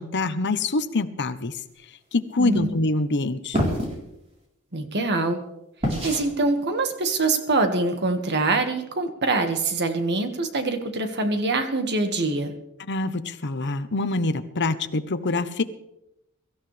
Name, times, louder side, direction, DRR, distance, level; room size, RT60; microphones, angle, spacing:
voice 1, 0.0-1.5 2.1-3.6 12.9-15.6, left 2 dB, 55° left, 10 dB, 1.0 m, -25 dB
voice 2, 2.4-2.7 4.7-5.4 6.0-12.5, right 3 dB, 50° right, 6 dB, 1.8 m, -24 dB
sound 1, 3.5-4.0 5.8-6.3, equal, 30° right, 3.9 m, -25 dB
23.5 x 14.0 x 3.4 m, 0.85 s
head